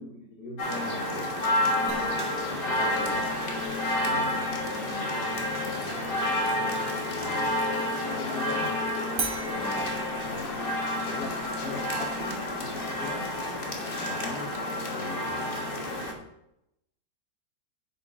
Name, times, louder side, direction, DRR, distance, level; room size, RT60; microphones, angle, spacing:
voice 1, 0.0-1.3 1.8-3.3 3.9-6.2 7.0-7.7 8.2-8.7 9.5-10.6 11.1-13.3 14.0-14.5 14.8-15.9, left 2 dB, 75° left, 0 dB, 1.9 m, -41 dB
sound 1, 0.6-16.1, left 1 dB, 35° left, 1.4 m, -29 dB
sound 2, 2.5-8.9, right 2 dB, 40° right, 0.5 m, -45 dB
sound 3, 9.2-14.2, right 3 dB, 55° right, 1.9 m, -43 dB
9.4 x 5.6 x 3.7 m, 0.81 s
omnidirectional pair, 1.7 m